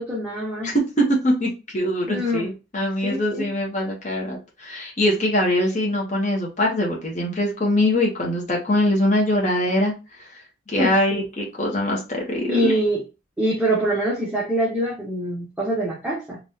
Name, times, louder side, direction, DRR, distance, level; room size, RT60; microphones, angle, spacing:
voice 1, 0.0-0.7 2.1-2.5 3.0-3.4 10.8-11.2 12.5-13.0 13.4-16.4, right 1 dB, 5° right, -7 dB, 0.8 m, -24 dB
voice 2, 0.6-9.9 10.2-10.4 10.7-12.8, left 1 dB, 35° left, -1 dB, 0.8 m, -23 dB
3.6 x 2.4 x 2.7 m, 0.28 s
head